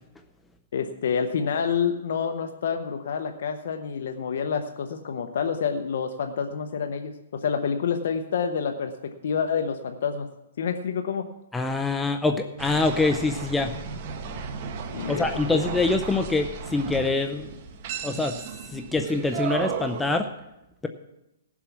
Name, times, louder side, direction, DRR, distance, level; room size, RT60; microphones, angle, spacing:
voice 1, 0.7-10.3 10.6-11.3 14.9-15.6, left 6 dB, 60° left, 6 dB, 0.9 m, -28 dB
voice 2, 11.5-13.7 15.1-17.5 18.0-18.3 18.7-20.3, left 3 dB, 5° left, 5 dB, 0.5 m, -25 dB
sound 1, 12.6-20.2, right 6 dB, 35° right, 1.3 m, -35 dB
17.0 x 7.4 x 6.1 m, 0.91 s
hypercardioid pair, 160°, 0 cm